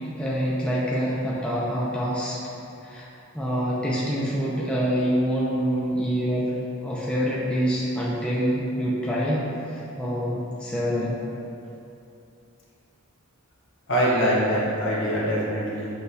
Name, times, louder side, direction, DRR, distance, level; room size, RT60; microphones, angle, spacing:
voice 1, 0.2-2.4 2.8-3.1 3.3-11.2, equal, 5° left, -7 dB, 0.4 m, -26 dB
voice 2, 13.9-15.9, equal, 60° left, -6 dB, 0.8 m, -23 dB
6.1 x 2.2 x 2.6 m, 2.7 s
head